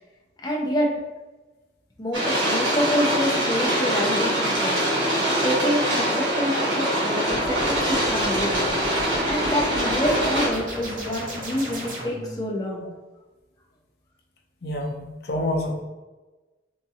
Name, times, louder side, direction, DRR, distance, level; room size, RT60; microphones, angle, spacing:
voice 1, 0.4-0.9 2.0-4.8 5.4-8.7 9.2-12.9, equal, 20° left, -3 dB, 0.7 m, -27 dB
sound 1, 2.1-10.5, right 1 dB, 90° right, 1.4 m, -23 dB
sound 2, 7.2-12.4, equal, 45° right, 0.9 m, -35 dB
voice 2, 14.6-15.8, left 1 dB, 60° left, 1 dB, 0.6 m, -27 dB
3.6 x 2.9 x 2.8 m, 1.2 s
head